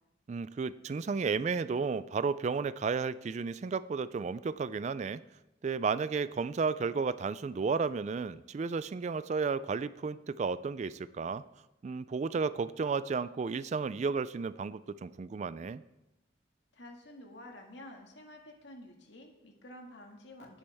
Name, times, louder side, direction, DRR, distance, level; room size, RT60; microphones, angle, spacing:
voice 1, 0.3-5.2 5.6-11.4 11.8-15.8, right 5 dB, 35° right, 16 dB, 0.3 m, -33 dB
voice 2, 16.7-20.6, left 1 dB, 70° left, 2 dB, 1.9 m, -50 dB
17.0 x 8.4 x 3.5 m, 0.95 s
head